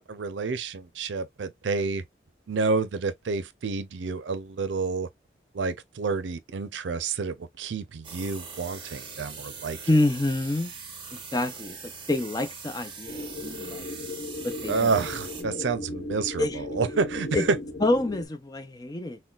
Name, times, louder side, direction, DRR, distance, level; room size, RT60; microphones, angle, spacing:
voice 1, 0.0-2.0 2.5-5.1 5.5-9.8 14.7-17.6, right 4 dB, 90° right, 0.5 m, -29 dB
sound 1, 8.0-15.4, right 5 dB, 25° right, 0.8 m, -41 dB
voice 2, 9.9-10.7 11.1-13.9 14.4-14.9 15.5-15.6 16.4-16.6 17.3-17.4 17.8-19.2, left 2 dB, 20° left, 0.4 m, -27 dB
sound 2, 13.1-18.3, left 1 dB, 55° left, 1.0 m, -36 dB
3.9 x 2.2 x 2.3 m
head